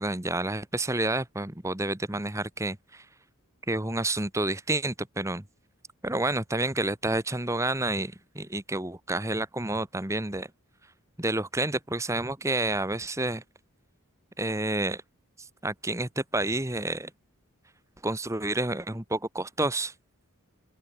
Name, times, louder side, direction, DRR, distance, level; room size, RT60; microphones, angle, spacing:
voice 1, 0.0-2.8 3.7-5.4 6.0-10.5 11.2-13.4 14.4-15.0 15.6-17.1 18.0-19.9, right 2 dB, 15° right, 1.5 m, -29 dB
open air
head